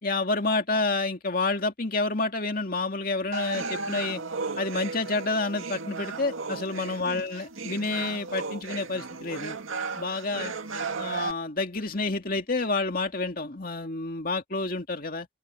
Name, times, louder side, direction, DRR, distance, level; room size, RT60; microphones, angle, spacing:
voice 1, 0.0-4.2 4.6-9.6 10.0-10.5 11.0-15.3, left 3 dB, 45° left, 2.4 m, -29 dB
sound 1, 3.3-11.3, right 4 dB, 85° right, 2.1 m, -35 dB
open air
head